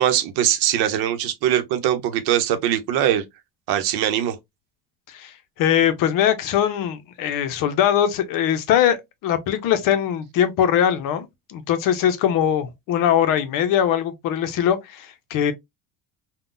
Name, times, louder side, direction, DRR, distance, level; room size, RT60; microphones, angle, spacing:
voice 1, 0.0-3.2 3.7-4.4, right 11 dB, 75° right, 0.8 m, -21 dB
voice 2, 5.1-9.0 9.2-15.5, left 9 dB, 55° left, 0.7 m, -21 dB
3.6 x 2.2 x 2.5 m
cardioid pair, 145°, 39 cm